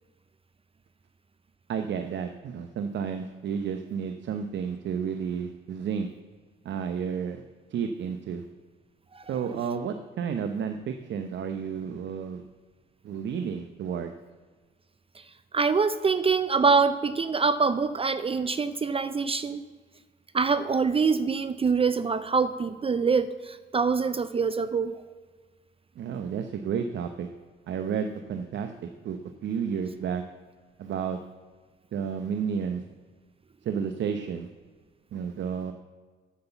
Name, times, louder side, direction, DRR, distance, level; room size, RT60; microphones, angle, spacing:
voice 1, 1.7-6.1 6.6-7.4 7.7-8.4 9.3-12.4 13.0-14.1 26.0-27.3 27.7-30.2 30.8-31.2 31.9-32.8 33.6-34.5 35.1-35.7, right 7 dB, 65° right, 8 dB, 0.8 m, -31 dB
voice 2, 15.5-19.6 20.3-25.0, right 5 dB, 30° right, 14 dB, 0.5 m, -25 dB
8.1 x 7.7 x 6.9 m, 1.4 s
cardioid pair, 90°, 20 cm